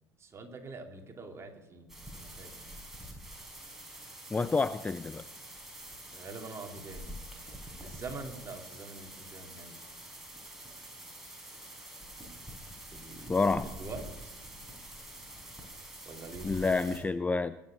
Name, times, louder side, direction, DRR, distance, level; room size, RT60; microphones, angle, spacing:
voice 1, 0.2-1.9 2.2-2.5 6.1-7.2 7.8-9.8 12.9-13.4 13.8-14.3 16.0-17.1, right 3 dB, 30° right, 3 dB, 2.7 m, -44 dB
sound 1, 1.9-17.0, right 1 dB, 5° right, 4.8 m, -46 dB
voice 2, 4.3-5.2 13.3-13.6 16.4-17.5, left 4 dB, 15° left, 14 dB, 0.5 m, -28 dB
21.0 x 7.3 x 5.9 m, 1.1 s
figure-of-eight pair, 60°, 10 cm